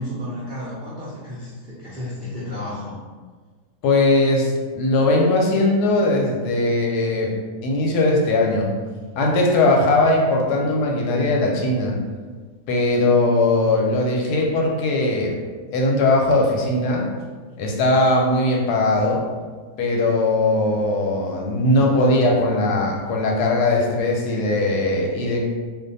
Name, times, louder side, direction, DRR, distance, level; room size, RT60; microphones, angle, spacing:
voice 1, 0.0-3.0, left 1 dB, 85° right, -7 dB, 0.4 m, -32 dB
voice 2, 3.8-7.3 7.6-8.7 9.2-12.0 12.7-15.4 15.7-17.1 17.6-19.2 19.8-25.4, left 2 dB, 90° left, 0 dB, 1.2 m, -19 dB
2.6 x 2.4 x 3.9 m, 1.4 s
omnidirectional pair, 1.7 m